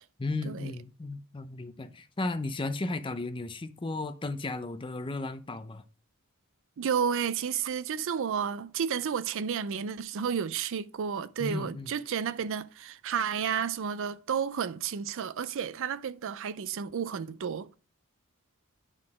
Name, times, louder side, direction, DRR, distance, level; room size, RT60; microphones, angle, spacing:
voice 1, 0.2-5.8 11.4-11.9, left 2 dB, 25° left, 0.5 m, -34 dB
voice 2, 6.8-17.7, right 7 dB, 60° right, 0.4 m, -31 dB
9.7 x 3.7 x 4.8 m
head